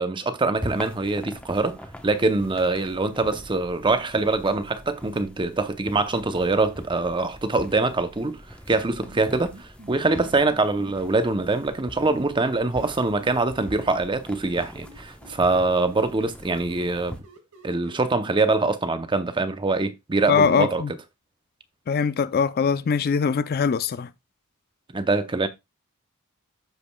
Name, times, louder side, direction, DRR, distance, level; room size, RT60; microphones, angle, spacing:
voice 1, 0.0-8.4 8.7-17.2 17.6-20.8 24.9-25.5, right 3 dB, 20° right, 0.6 m, -24 dB
sound 1, 0.5-17.2, equal, 5° left, 0.9 m, -42 dB
sound 2, 9.0-11.3 12.1-14.1 14.4-18.0, right 1 dB, 90° right, 2.3 m, -48 dB
voice 2, 20.3-20.9 21.9-24.1, left 6 dB, 45° left, 0.4 m, -22 dB
13.5 x 5.1 x 2.2 m
head